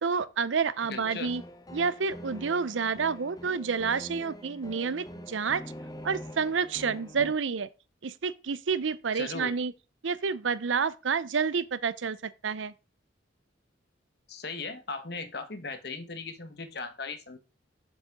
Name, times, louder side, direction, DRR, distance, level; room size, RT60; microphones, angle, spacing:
voice 1, 0.0-1.4 1.7-5.6 6.0-7.7 8.0-9.7 10.0-12.7, right 5 dB, 80° right, 0.6 m, -29 dB
voice 2, 0.9-1.3 9.1-9.5 14.3-17.4, left 4 dB, 55° left, 1.2 m, -38 dB
sound 1, 1.0-7.3, equal, 20° left, 0.8 m, -44 dB
7.3 x 6.9 x 3.6 m
head